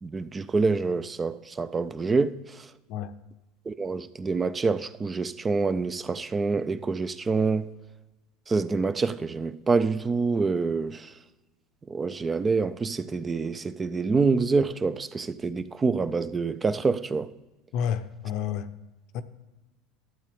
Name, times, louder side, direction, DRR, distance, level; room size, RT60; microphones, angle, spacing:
voice 1, 0.0-2.7 3.7-7.7 8.5-11.1 11.9-17.3, right 4 dB, 20° right, 0.3 m, -26 dB
voice 2, 17.7-18.7 19.1-19.2, left 8 dB, 60° left, 0.6 m, -30 dB
12.0 x 7.4 x 3.5 m
supercardioid pair, 105°, 0 cm